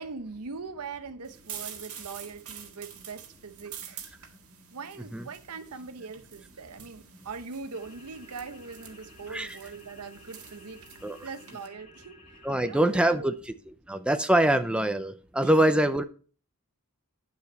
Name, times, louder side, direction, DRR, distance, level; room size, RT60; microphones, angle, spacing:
voice 1, 0.0-4.0 4.7-10.9 11.2-13.3 15.4-15.8, right 4 dB, 85° right, 0.8 m, -41 dB
sound 1, 1.2-11.7, right 8 dB, 70° right, 1.7 m, -47 dB
sound 2, 7.7-12.8, left 1 dB, 35° left, 4.2 m, -54 dB
voice 2, 12.4-13.3 13.9-16.0, right 1 dB, 5° right, 0.5 m, -24 dB
9.7 x 7.0 x 4.1 m
head